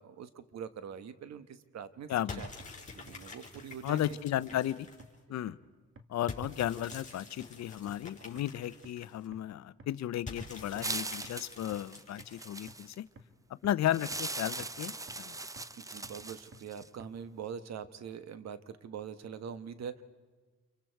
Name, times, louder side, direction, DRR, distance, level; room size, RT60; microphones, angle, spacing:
voice 1, 0.0-2.1 2.4-2.5 2.9-4.2 15.8-20.0, right 7 dB, 60° right, 12 dB, 1.3 m, -43 dB
voice 2, 2.1-2.4 3.8-4.9 5.3-5.6 6.1-13.0 13.6-15.4, left 12 dB, 65° left, 17 dB, 0.7 m, -34 dB
sound 1, 2.1-2.2 2.6-2.7 3.1-3.2 3.6-3.7 4.0-4.1 4.5-4.6 5.0-5.1 5.5-5.6 6.0-6.1 6.4-6.5 6.9-7.0 7.4-7.5 7.9-8.0 8.4-8.5 8.8-8.9 9.3-9.4 9.8-9.9 10.3-10.4 10.8-10.9 11.2-11.3 11.7-11.8 12.2-12.3 12.7-12.8 13.2-13.3 13.6-13.7 14.1-14.2 14.6-14.7 15.1-15.2 15.6-15.7 16.0-16.1 16.5-16.6 17.0-17.1, right 3 dB, 45° right, 2.0 m, -51 dB
sound 2, 2.3-5.2 6.3-9.3 10.3-12.9, left 3 dB, 25° left, 5.2 m, -47 dB
sound 3, 10.8-13.0 13.9-16.9, right 2 dB, 10° right, 0.5 m, -40 dB
28.0 x 24.0 x 4.6 m, 1.4 s
cardioid pair, 90°, 30 cm